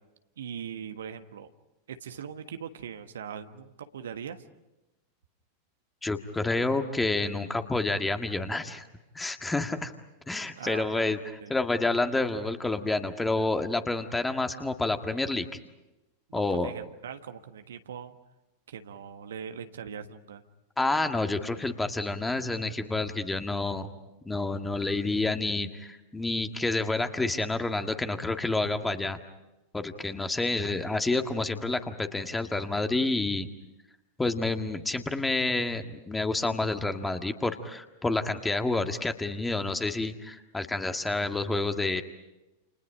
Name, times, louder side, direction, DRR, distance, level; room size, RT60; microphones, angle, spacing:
voice 1, 0.4-1.5 1.9-4.4 10.6-11.5 16.3-18.2 18.7-20.4, right 7 dB, 65° right, 8 dB, 1.4 m, -41 dB
voice 2, 6.0-8.8 9.2-9.9 10.3-11.2 11.5-15.5 16.3-16.7 20.8-23.9 24.3-29.2 29.7-33.5 34.2-42.0, left 2 dB, 10° left, 7 dB, 1.8 m, -29 dB
29.5 x 29.5 x 5.1 m, 0.97 s
figure-of-eight pair, 90°, 0 cm